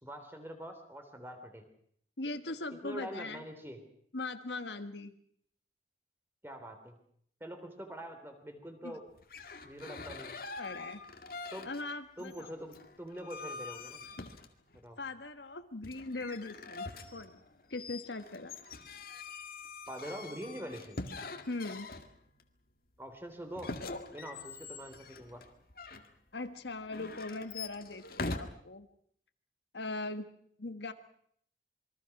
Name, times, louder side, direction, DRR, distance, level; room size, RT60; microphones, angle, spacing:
voice 1, 0.0-1.6 2.8-3.8 6.4-7.0 7.4-9.0 9.6-10.4 11.5-11.7 12.2-14.0 14.7-15.0 19.9-21.0 23.0-23.8 24.1-25.4, equal, 15° right, 6 dB, 3.4 m, -44 dB
voice 2, 2.2-3.4 4.1-5.1 8.8-9.0 10.6-11.0 11.6-12.5 14.2-14.3 15.0-16.9 17.1-17.4 17.7-18.5 21.5-21.9 26.3-28.9 29.7-30.3 30.6-30.9, left 2 dB, 80° left, 9 dB, 1.6 m, -40 dB
sound 1, 9.2-11.9 12.2-14.8 15.8-22.4 23.6-26.1 26.9-28.4, left 3 dB, 55° left, 2.1 m, -44 dB
27.5 x 23.0 x 6.0 m, 0.65 s
head